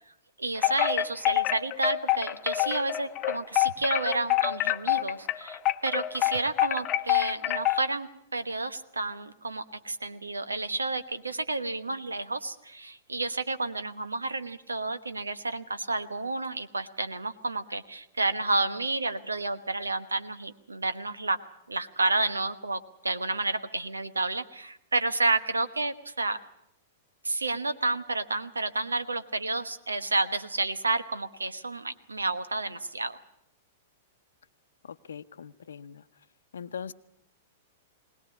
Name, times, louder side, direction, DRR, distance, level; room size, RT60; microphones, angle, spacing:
voice 1, 0.4-21.4 21.7-26.4 27.2-33.2, right 2 dB, 90° right, 12 dB, 1.1 m, -30 dB
Wind chime, 0.5-7.9, left 16 dB, 35° left, 0.8 m, -27 dB
voice 2, 34.8-36.0 36.5-36.9, left 7 dB, 75° left, 13 dB, 0.8 m, -41 dB
21.0 x 19.0 x 8.4 m, 0.76 s
figure-of-eight pair, 105°, 0 cm